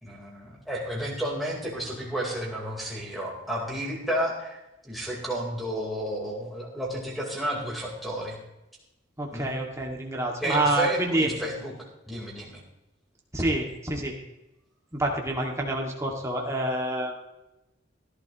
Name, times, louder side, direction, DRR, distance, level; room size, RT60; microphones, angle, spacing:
voice 1, 0.0-8.4 9.3-9.5 10.4-11.7 12.1-12.6, right 1 dB, ahead, -5 dB, 4.0 m, -32 dB
voice 2, 9.2-11.3 13.3-14.2 14.9-17.1, right 1 dB, 15° right, 0 dB, 2.2 m, -27 dB
16.5 x 11.5 x 3.1 m, 0.94 s
head